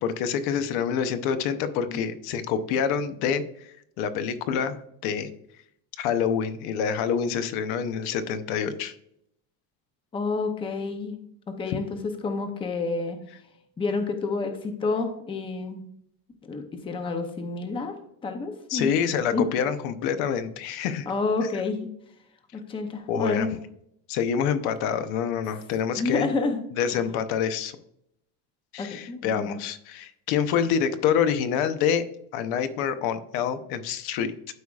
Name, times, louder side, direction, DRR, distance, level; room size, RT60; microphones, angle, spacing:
voice 1, 0.0-5.3 6.0-8.9 18.7-21.1 23.1-23.5 24.1-26.3 26.8-27.8 28.7-32.0 32.3-34.3, left 7 dB, 75° left, 10 dB, 0.9 m, -27 dB
voice 2, 10.1-11.2 11.6-12.0 12.2-13.2 13.8-15.8 16.4-17.9 18.2-18.9 19.3-19.5 21.1-21.9 22.5-23.5 26.0-26.6 26.9-27.0 28.8-29.6, left 3 dB, 15° left, 6 dB, 0.6 m, -29 dB
12.5 x 4.8 x 2.4 m, 0.73 s
cardioid pair, 175°, 38 cm